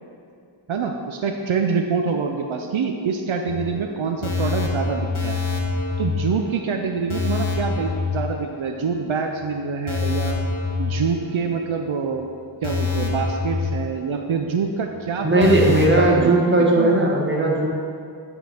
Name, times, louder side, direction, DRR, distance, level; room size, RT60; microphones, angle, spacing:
voice 1, 0.7-5.4 6.0-10.4 10.8-12.3 12.6-15.6 15.8-16.3 16.8-16.9, right 5 dB, 80° right, 3 dB, 0.5 m, -25 dB
sound 1, 3.5-9.0 9.3-9.4 9.9-11.8 12.1-12.2 12.6-14.6 14.9-15.0 15.4-16.0, left 4 dB, 80° left, 1.0 m, -26 dB
voice 2, 15.2-17.7, right 1 dB, 25° right, -3 dB, 1.3 m, -17 dB
9.9 x 3.6 x 4.4 m, 2.4 s
wide cardioid pair, 45°, 47 cm